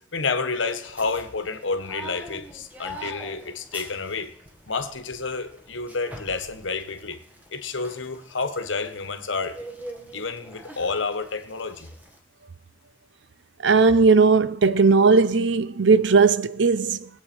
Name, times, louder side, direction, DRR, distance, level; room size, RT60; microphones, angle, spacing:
voice 1, 0.1-4.3 4.7-7.2 7.5-9.6 10.1-11.9, left 4 dB, 70° left, 1.2 m, -29 dB
sound 1, 0.5-12.2, equal, 10° right, 1.3 m, -44 dB
voice 2, 13.6-17.1, right 4 dB, 60° right, 0.6 m, -17 dB
21.0 x 8.2 x 4.4 m
head